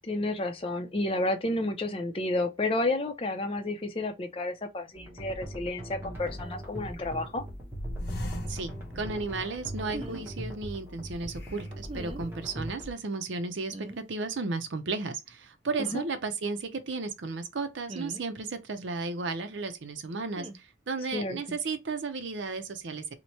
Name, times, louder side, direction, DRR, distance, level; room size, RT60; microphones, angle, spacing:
voice 1, 0.0-7.4 15.8-16.0 21.1-21.4, left 2 dB, 30° left, 0.5 m, -31 dB
sound 1, 5.0-12.9, right 1 dB, 10° right, 0.9 m, -40 dB
sound 2, 6.1-7.2 7.7-10.1 10.5-10.6 11.3-12.1, left 1 dB, 60° left, 0.7 m, -40 dB
voice 2, 8.5-20.5 20.9-23.0, right 3 dB, 80° right, 0.6 m, -34 dB
sound 3, 9.9-10.2 11.9-12.3 13.7-14.0 15.7-16.0 17.9-18.2 20.3-20.6, right 2 dB, 30° right, 0.5 m, -40 dB
3.0 x 2.1 x 4.1 m
head